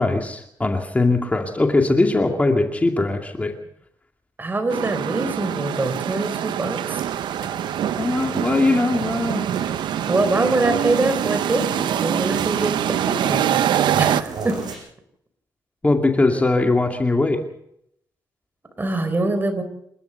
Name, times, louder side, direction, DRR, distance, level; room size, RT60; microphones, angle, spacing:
voice 1, 0.0-3.5 8.0-9.5 15.8-17.4, left 2 dB, 20° left, 3 dB, 2.4 m, -20 dB
voice 2, 4.4-7.0 10.1-13.5 14.0-14.6 18.8-19.6, right 2 dB, 25° right, 10 dB, 4.0 m, -24 dB
sound 1, 4.7-14.2, right 10 dB, 85° right, 0.7 m, -24 dB
sound 2, 6.9-14.8, right 4 dB, 65° right, 6.5 m, -36 dB
28.5 x 13.0 x 7.0 m, 0.75 s
cardioid pair, 100°, 8 cm